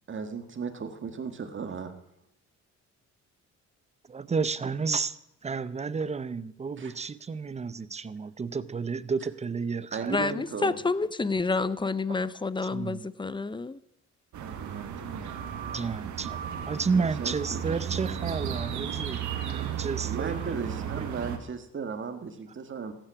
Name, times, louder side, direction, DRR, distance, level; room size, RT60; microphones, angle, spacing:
voice 1, 0.1-1.9 6.8-6.9 9.9-10.8 14.4-15.3 16.9-18.5 20.0-22.9, right 5 dB, 40° right, 8 dB, 1.7 m, -36 dB
voice 2, 4.1-5.2 5.4-10.2 12.7-13.1 15.6-16.4 16.7-21.1, right 5 dB, 20° right, 17 dB, 0.7 m, -31 dB
voice 3, 10.1-13.8, left 3 dB, 15° left, 17 dB, 0.6 m, -29 dB
sound 1, 14.3-21.4, right 9 dB, 70° right, 1.6 m, -34 dB
15.0 x 9.1 x 6.1 m, 0.80 s
cardioid pair, 90°, 30 cm